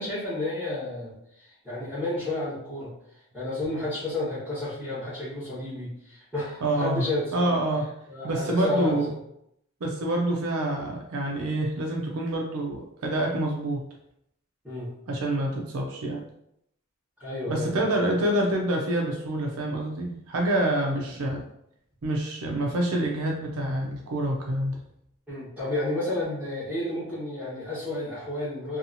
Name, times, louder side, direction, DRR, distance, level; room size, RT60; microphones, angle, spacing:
voice 1, 0.0-2.9 3.3-7.5 8.1-9.2 14.6-14.9 17.2-17.8 25.3-28.8, left 2 dB, 5° right, -14 dB, 1.1 m, -31 dB
voice 2, 6.6-7.0 7.3-7.9 8.2-9.1 9.8-13.9 15.1-16.2 17.5-21.4 22.0-24.8, right 1 dB, 70° right, 0 dB, 0.5 m, -27 dB
2.7 x 2.3 x 2.6 m, 0.75 s
head